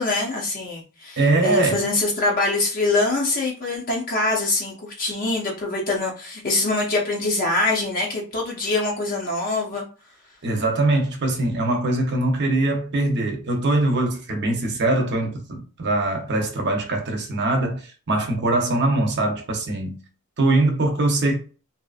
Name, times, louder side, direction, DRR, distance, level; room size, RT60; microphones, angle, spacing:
voice 1, 0.0-9.8, left 2 dB, 40° left, 0.6 m, -24 dB
voice 2, 1.2-1.8 10.4-20.0 20.4-21.4, right 2 dB, 50° right, 0.7 m, -22 dB
2.7 x 2.4 x 2.4 m
head